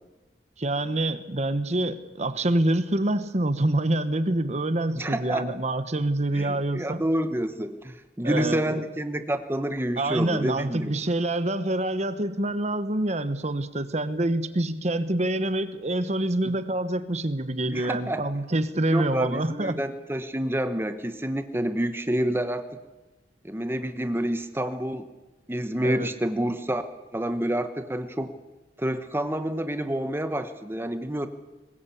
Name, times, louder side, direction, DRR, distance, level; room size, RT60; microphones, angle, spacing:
voice 1, 0.6-7.0 8.2-8.8 10.0-19.8 25.8-26.1, right 1 dB, 40° right, 12 dB, 1.1 m, -26 dB
voice 2, 4.9-5.4 6.3-10.9 17.6-18.2 18.9-22.6 23.4-25.1 25.5-26.8 27.1-28.3 28.8-31.3, right 1 dB, 15° right, 9 dB, 1.0 m, -28 dB
22.5 x 20.0 x 8.5 m, 1.1 s
head